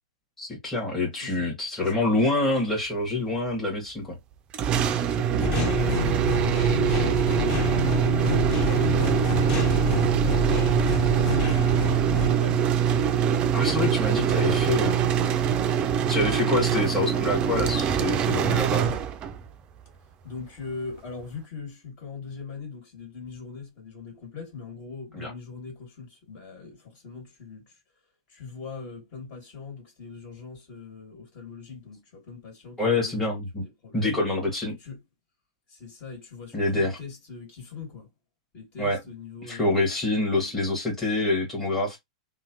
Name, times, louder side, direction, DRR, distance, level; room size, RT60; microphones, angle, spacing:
voice 1, 0.4-4.2 13.5-15.0 16.1-18.9 25.2-25.3 32.8-33.6 33.9-34.7 36.5-36.9 38.8-39.0 39.5-42.0, left 2 dB, 10° left, 1.4 m, -26 dB
voice 2, 1.2-1.5 1.8-1.9 4.9-13.5 13.9-14.6 16.2-17.1 20.2-27.8 28.3-34.2 34.7-35.0 35.7-38.1 38.5-39.8 40.3-40.6, left 5 dB, 45° left, 2.1 m, -42 dB
sound 1, 4.5-19.5, right 8 dB, 30° right, 0.4 m, -23 dB
sound 2, 5.4-12.4, left 5 dB, 30° left, 1.3 m, -28 dB
3.0 x 2.1 x 2.9 m
hypercardioid pair, 105°, 3 cm